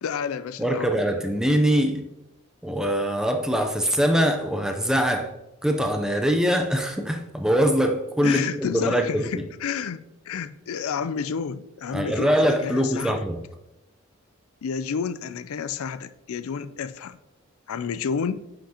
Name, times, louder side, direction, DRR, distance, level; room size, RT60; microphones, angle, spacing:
voice 1, 0.0-0.9 8.2-13.2 14.6-17.2 17.7-18.4, left 6 dB, 85° left, 0.4 m, -30 dB
voice 2, 0.6-2.1 2.6-5.3 5.6-9.4 11.9-13.4, equal, 5° right, 0.6 m, -23 dB
10.0 x 5.8 x 2.9 m
head